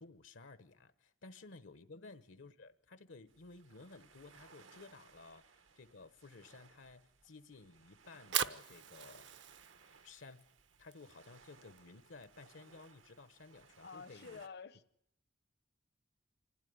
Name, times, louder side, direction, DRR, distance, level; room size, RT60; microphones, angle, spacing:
voice 1, 0.0-5.4 5.7-9.3 10.0-10.5 10.8-14.4, left 3 dB, 75° left, 1.1 m, -55 dB
sound 1, 3.3-14.5, right 5 dB, 80° right, 1.3 m, -63 dB
Fire, 8.0-14.2, right 9 dB, 65° right, 0.8 m, -43 dB
voice 2, 13.8-14.8, left 5 dB, 55° left, 0.8 m, -50 dB
25.5 x 16.0 x 9.5 m
head